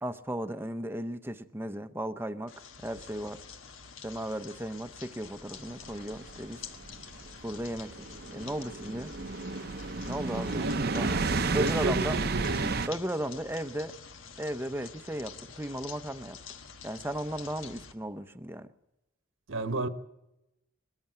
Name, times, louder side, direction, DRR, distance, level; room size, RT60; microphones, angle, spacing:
voice 1, 0.0-3.4 4.0-6.6 7.4-7.9 8.3-9.1 10.1-11.2 11.5-12.2 12.9-14.0 14.4-16.4 16.8-18.7, right 1 dB, 10° right, 0.7 m, -35 dB
sound 1, 2.5-17.9, left 6 dB, 70° left, 1.4 m, -48 dB
sound 2, 5.8-12.9, right 3 dB, 50° right, 0.7 m, -32 dB
voice 2, 10.4-11.2 11.6-12.9 19.5-19.9, right 2 dB, 70° right, 1.2 m, -33 dB
21.0 x 14.0 x 9.0 m
head